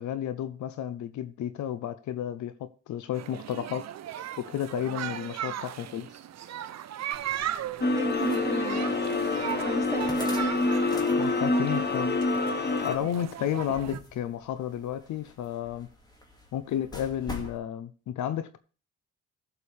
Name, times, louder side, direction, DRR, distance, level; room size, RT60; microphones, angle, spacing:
voice 1, 0.0-3.8 4.5-6.1 11.1-12.2 12.8-15.9 16.5-18.6, left 10 dB, 70° left, 0.7 m, -32 dB
sound 1, 3.1-14.0, right 11 dB, 60° right, 0.8 m, -37 dB
sound 2, 7.1-17.6, left 1 dB, 15° left, 2.3 m, -46 dB
sound 3, 7.8-13.0, left 3 dB, 35° left, 1.3 m, -26 dB
voice 2, 7.9-9.0 9.6-10.6, right 2 dB, 10° right, 3.8 m, -34 dB
15.5 x 6.8 x 3.4 m
cardioid pair, 90°, 30 cm